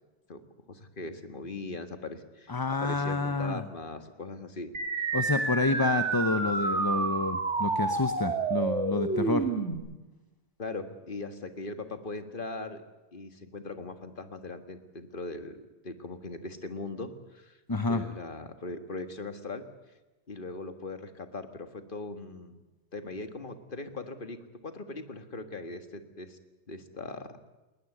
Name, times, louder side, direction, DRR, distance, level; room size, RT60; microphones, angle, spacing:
voice 1, 0.7-4.7 5.0-5.2 10.6-12.8 13.1-17.6 17.9-19.6 20.3-22.6 22.9-24.4 24.6-26.4 26.7-27.3, left 3 dB, 50° left, 8 dB, 1.9 m, -40 dB
voice 2, 2.5-3.6 5.1-9.5 17.7-18.0, left 3 dB, 20° left, 9 dB, 0.8 m, -29 dB
sound 1, 4.7-9.7, right 3 dB, 85° right, 2.5 m, -29 dB
20.0 x 20.0 x 9.3 m, 1.1 s
omnidirectional pair, 1.2 m